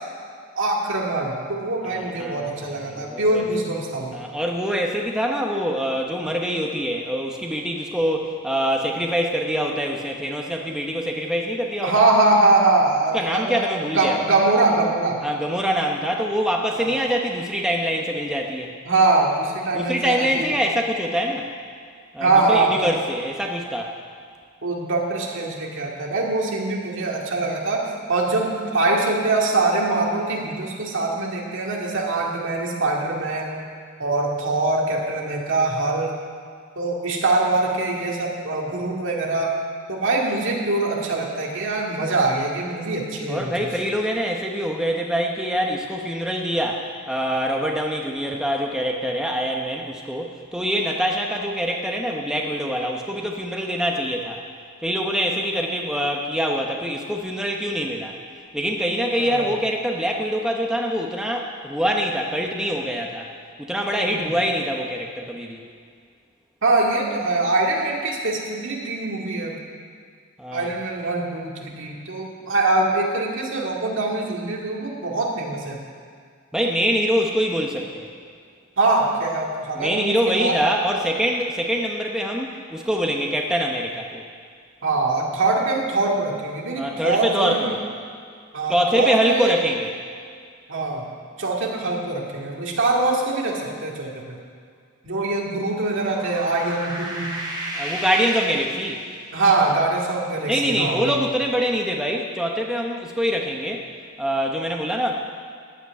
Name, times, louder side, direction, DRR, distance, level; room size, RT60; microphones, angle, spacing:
voice 1, 0.5-4.2 11.8-15.2 16.8-16.9 18.9-20.5 22.2-22.9 24.6-33.6 34.0-36.1 36.8-39.5 39.9-43.7 59.2-59.4 64.1-64.3 66.6-69.6 70.5-75.8 78.8-80.5 84.8-87.7 88.5-89.5 90.7-91.1 91.4-94.4 95.0-97.3 99.3-101.2, right 2 dB, 65° right, -1 dB, 2.2 m, -23 dB
voice 2, 1.8-3.4 4.1-11.9 13.1-14.2 15.2-18.7 19.7-21.5 22.1-23.9 43.3-54.4 54.8-58.2 58.5-63.3 63.6-65.6 70.4-70.7 76.5-78.1 79.8-84.2 86.8-87.7 88.7-89.9 97.7-99.0 100.5-103.9 104.2-105.1, equal, 5° right, 0 dB, 0.9 m, -24 dB
sound 1, 95.7-99.4, right 1 dB, 20° right, 2.9 m, -33 dB
14.0 x 6.0 x 9.6 m, 2.1 s
head